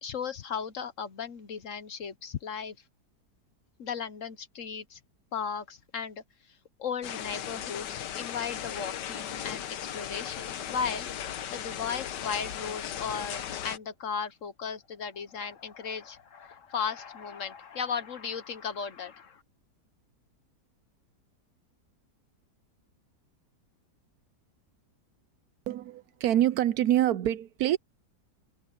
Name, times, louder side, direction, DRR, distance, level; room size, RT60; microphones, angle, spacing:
voice 1, 0.0-2.8 3.8-5.0 5.3-9.6 9.9-11.1 11.5-19.4, left 6 dB, 55° left, 1.2 m, -36 dB
sound 1, 7.0-13.8, left 10 dB, 85° left, 1.6 m, -37 dB
voice 2, 25.7-27.8, right 12 dB, 70° right, 1.0 m, -26 dB
omnidirectional pair, 1.8 m